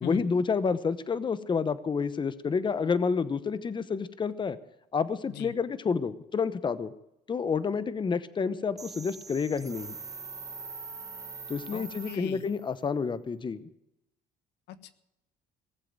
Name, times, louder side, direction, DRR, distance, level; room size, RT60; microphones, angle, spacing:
voice 1, 0.0-4.6 4.9-6.9 7.3-10.0 11.5-13.6, left 5 dB, 30° left, 14 dB, 0.9 m, -29 dB
sound 1, 8.8-12.6, right 4 dB, 20° right, 0.6 m, -43 dB
voice 2, 11.7-12.5 14.7-14.9, left 10 dB, 85° left, 12 dB, 1.3 m, -39 dB
18.5 x 7.7 x 8.9 m, 0.87 s
cardioid pair, 110°, 17 cm